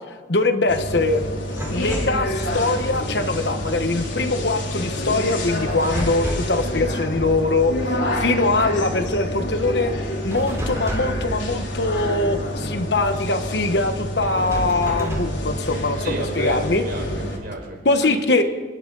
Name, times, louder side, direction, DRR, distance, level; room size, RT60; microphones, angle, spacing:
voice 1, 0.3-1.2 1.7-9.9 10.2-16.8 17.8-18.4, left 2 dB, 60° left, 8 dB, 1.2 m, -22 dB
sound 1, 0.7-17.4, equal, 80° left, 3.6 m, -27 dB
sound 2, 1.5-2.2 5.7-6.6 10.3-11.3 14.2-15.4, equal, 15° right, 3.7 m, -30 dB
voice 2, 16.0-18.4, right 1 dB, 55° right, 1 dB, 5.0 m, -33 dB
27.5 x 13.0 x 4.0 m, 1.4 s
head